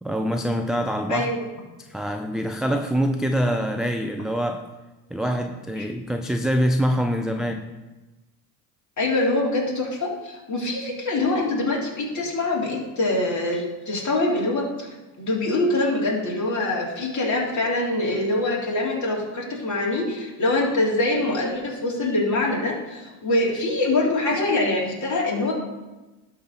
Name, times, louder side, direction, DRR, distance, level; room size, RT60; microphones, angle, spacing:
voice 1, 0.0-1.3 1.9-4.7 5.1-7.7, equal, ahead, 4 dB, 0.4 m, -25 dB
voice 2, 1.1-1.4 5.8-5.9 9.0-14.9 15.2-25.5, left 2 dB, 35° left, -3 dB, 3.4 m, -24 dB
11.5 x 4.1 x 6.7 m, 1.1 s
hypercardioid pair, 80°, 48 cm